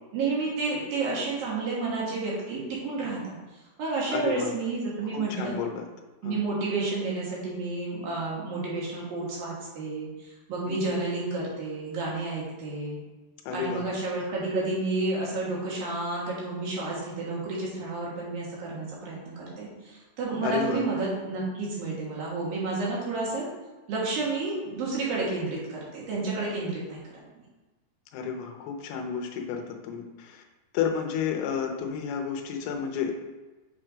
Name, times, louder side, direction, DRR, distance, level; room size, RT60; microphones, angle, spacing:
voice 1, 0.1-3.3 3.8-5.5 6.2-10.1 10.5-13.0 13.5-23.4 23.9-27.0, right 3 dB, 65° right, -5 dB, 3.4 m, -30 dB
voice 2, 4.1-4.5 5.1-5.9 6.2-6.4 13.5-13.9 20.4-20.9 28.1-30.4 30.7-33.1, left 7 dB, 80° left, 3 dB, 2.8 m, -31 dB
7.2 x 4.4 x 5.0 m, 1.2 s
omnidirectional pair, 4.6 m